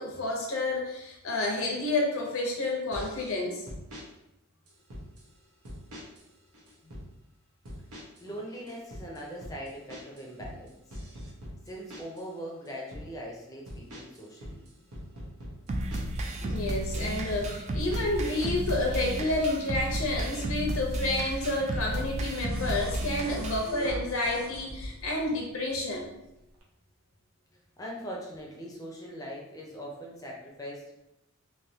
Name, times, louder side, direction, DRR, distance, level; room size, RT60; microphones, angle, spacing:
voice 1, 0.0-3.6 16.4-26.1, left 2 dB, 70° left, 0 dB, 0.8 m, -30 dB
sound 1, 2.9-3.3 3.7-4.1 4.7-5.3 5.6-6.3 6.5-7.1 7.7-8.3 8.5-12.3 12.7-13.1 13.7-16.3 16.7-18.8, equal, 90° right, 1.0 m, -43 dB
voice 2, 8.2-10.8 11.7-14.6 27.8-30.9, equal, 15° left, -2 dB, 0.6 m, -41 dB
sound 2, 15.7-23.7, right 1 dB, 30° right, 0.3 m, -33 dB
sound 3, 21.5-25.3 26.5-26.6, equal, 70° right, 0.7 m, -41 dB
3.4 x 2.7 x 2.8 m, 0.87 s
head